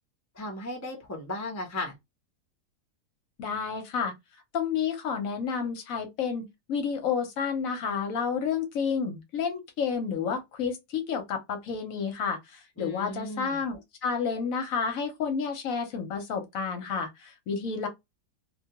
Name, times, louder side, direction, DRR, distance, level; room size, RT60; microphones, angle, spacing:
voice 1, 0.3-1.9 12.8-13.6, left 2 dB, 20° left, 0.4 m, -36 dB
voice 2, 3.4-17.9, left 6 dB, 65° left, 1.0 m, -30 dB
2.5 x 2.2 x 2.8 m
omnidirectional pair, 1.7 m